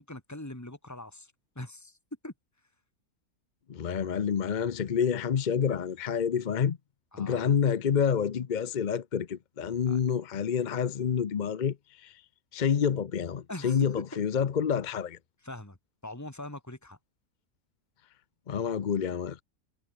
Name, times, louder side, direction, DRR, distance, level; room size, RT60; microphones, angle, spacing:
voice 1, 0.0-2.0 2.2-2.3 7.1-7.5 9.9-10.0 13.5-14.0 15.4-15.8 16.0-17.0, left 1 dB, 10° left, 3.3 m, -42 dB
voice 2, 3.7-6.8 7.2-12.2 12.5-15.2 18.5-19.4, left 7 dB, 45° left, 0.6 m, -28 dB
omnidirectional pair, 1.6 m